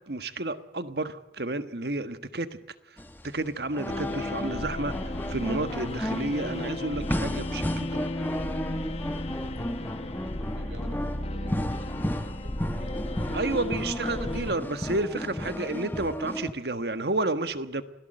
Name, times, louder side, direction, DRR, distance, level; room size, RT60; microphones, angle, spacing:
voice 1, 0.1-2.5 3.2-7.6 13.3-17.8, right 2 dB, 60° right, 11 dB, 1.4 m, -31 dB
sound 1, 3.0-16.5, equal, 10° left, 1.2 m, -34 dB
sound 2, 3.9-14.6, left 1 dB, 35° left, 1.2 m, -34 dB
voice 2, 6.8-13.6, equal, 75° right, 7 dB, 4.0 m, -51 dB
27.0 x 17.5 x 7.8 m, 1.0 s
head